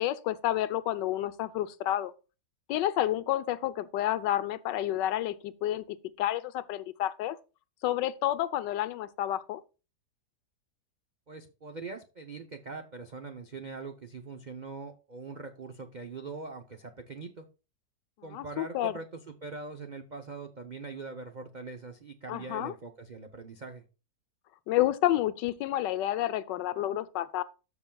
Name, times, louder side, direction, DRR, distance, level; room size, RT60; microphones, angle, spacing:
voice 1, 0.0-2.1 2.7-7.4 7.8-9.6 18.3-18.9 22.3-22.7 24.7-27.4, left 13 dB, 80° left, 1.3 m, -30 dB
voice 2, 11.3-17.5 18.2-23.8, right 4 dB, 70° right, 0.4 m, -42 dB
13.0 x 6.1 x 2.3 m
omnidirectional pair, 1.9 m